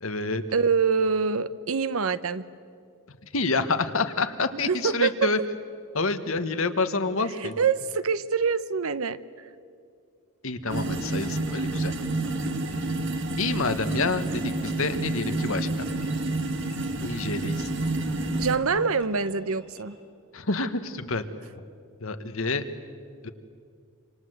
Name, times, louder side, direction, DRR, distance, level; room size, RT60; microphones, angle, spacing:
voice 1, 0.0-0.4 3.1-5.4 5.9-7.5 10.4-11.9 13.4-15.9 17.0-17.7 20.3-21.2 22.0-22.6 23.2-23.3, left 3 dB, 65° left, 9 dB, 1.4 m, -28 dB
voice 2, 0.5-2.5 4.7-5.1 7.4-9.2 18.4-20.0, right 5 dB, 75° right, 15 dB, 0.8 m, -25 dB
sound 1, 10.7-19.9, equal, 10° left, 5.8 m, -51 dB
sound 2, 10.7-18.6, right 2 dB, 55° right, 1.7 m, -29 dB
27.0 x 26.0 x 8.0 m, 2.3 s
head